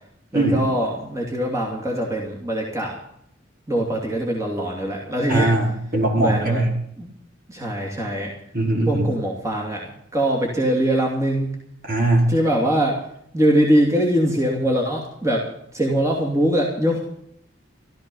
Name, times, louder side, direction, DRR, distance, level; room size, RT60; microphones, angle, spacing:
voice 1, 0.3-3.0 3.7-5.5 6.2-6.6 7.0-7.1 7.5-8.3 8.9-11.5 12.3-13.0 13.3-15.4 15.7-17.0, right 1 dB, 15° right, -2 dB, 2.7 m, -22 dB
voice 2, 5.3-6.7 8.5-9.1 11.9-12.3, right 1 dB, 55° right, -1 dB, 5.0 m, -20 dB
15.0 x 13.5 x 5.5 m, 0.71 s
head